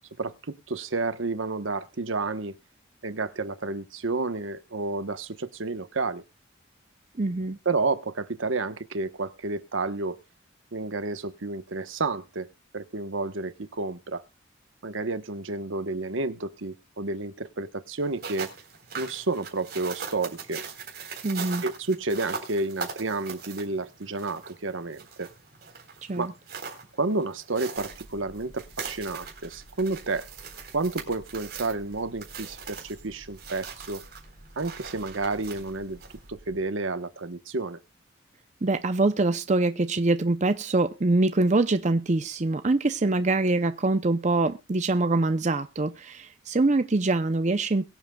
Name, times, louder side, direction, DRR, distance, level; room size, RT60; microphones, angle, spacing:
voice 1, 0.2-2.5 3.0-6.2 7.6-10.2 10.7-12.5 12.7-14.2 14.8-18.5 19.0-20.6 21.6-25.3 26.2-26.3 27.0-30.3 30.7-34.0 34.6-36.0 36.3-37.8, right 3 dB, 80° right, 1.1 m, -30 dB
voice 2, 7.2-7.6 21.2-21.6 26.1-26.3 38.6-47.8, right 2 dB, 35° right, 0.6 m, -24 dB
sound 1, 18.0-36.3, right 5 dB, 50° right, 3.8 m, -41 dB
sound 2, 27.7-36.6, equal, 60° left, 4.5 m, -52 dB
22.5 x 7.8 x 2.3 m
head